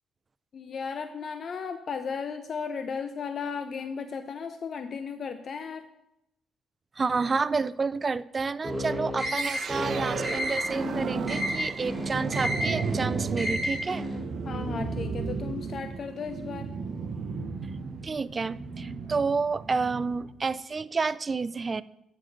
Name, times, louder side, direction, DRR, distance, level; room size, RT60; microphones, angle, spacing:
voice 1, 0.5-5.9 14.4-16.7, left 5 dB, 50° left, 9 dB, 0.5 m, -35 dB
voice 2, 7.0-14.1 18.0-21.8, right 4 dB, 35° right, 17 dB, 0.3 m, -29 dB
sound 1, 8.6-14.2, equal, 5° right, 3.3 m, -32 dB
sound 2, 9.2-20.3, right 5 dB, 55° right, 0.7 m, -34 dB
9.0 x 5.2 x 6.4 m, 0.85 s
cardioid pair, 90°, 0 cm